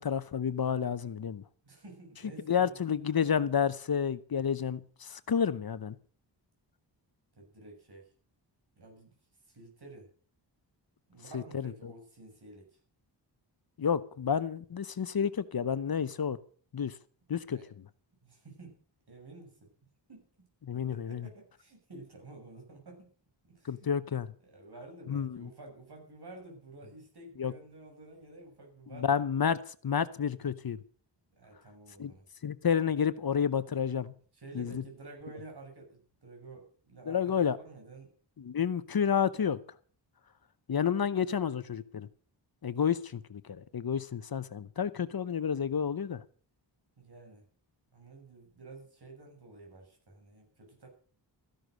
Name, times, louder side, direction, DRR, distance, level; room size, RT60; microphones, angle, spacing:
voice 1, 0.0-1.4 2.5-6.0 11.3-11.9 13.8-16.4 16.7-16.9 17.3-17.6 20.6-21.3 23.6-24.3 25.1-25.5 27.4-27.5 28.9-29.6 29.8-30.8 32.0-32.1 32.4-34.1 34.5-34.8 37.1-37.6 38.4-39.6 40.7-42.1 42.6-46.2, left 7 dB, 55° left, 14 dB, 0.9 m, -30 dB
voice 2, 1.6-2.8 7.4-8.1 8.8-9.1 9.5-10.1 11.1-12.7 17.4-17.7 18.2-18.8 19.1-19.7 20.1-20.3 20.7-23.1 23.4-23.9 24.4-29.3 31.4-32.3 34.3-38.1 47.0-47.5 47.9-50.9, right 2 dB, 60° right, 2 dB, 7.0 m, -51 dB
14.5 x 11.5 x 6.5 m, 0.43 s
wide cardioid pair, 90°, 44 cm